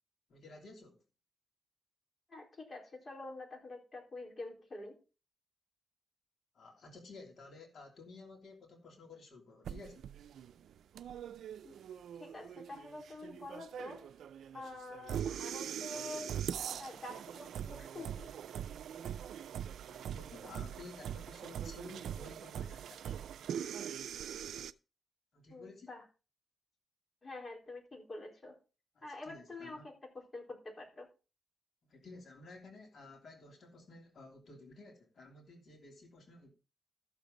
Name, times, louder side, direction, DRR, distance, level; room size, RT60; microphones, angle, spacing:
voice 1, 0.3-1.0 6.5-10.1 19.8-23.1 25.3-25.9 28.9-29.9 31.9-36.5, left 3 dB, 70° left, 2 dB, 3.1 m, -53 dB
voice 2, 2.3-5.0 11.6-11.8 12.2-14.1 14.5-16.3 16.8-18.3 25.5-26.1 27.2-28.6 29.0-31.1, left 2 dB, 40° left, 1 dB, 4.2 m, -47 dB
sound 1, 9.6-24.7, right 9 dB, 90° right, 0.4 m, -42 dB
13.5 x 7.1 x 3.9 m, 0.32 s
cardioid pair, 70°, 0 cm